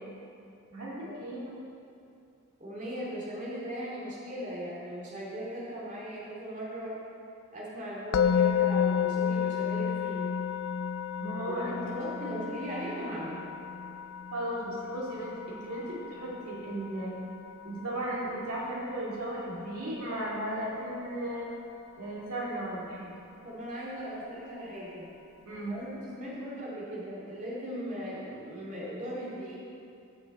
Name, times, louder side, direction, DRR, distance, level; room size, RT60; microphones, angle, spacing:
voice 1, 0.7-1.5 11.2-12.0 14.3-17.2 17.6-21.5 21.9-23.1 25.5-25.8, right 1 dB, 80° right, -5 dB, 2.2 m, -35 dB
voice 2, 2.6-7.0 7.5-10.3 11.7-13.4 23.4-25.1 25.7-29.6, equal, 35° right, -6 dB, 2.4 m, -38 dB
Musical instrument, 8.1-19.2, left 8 dB, 65° left, 0.4 m, -32 dB
14.0 x 7.0 x 4.3 m, 2.6 s
head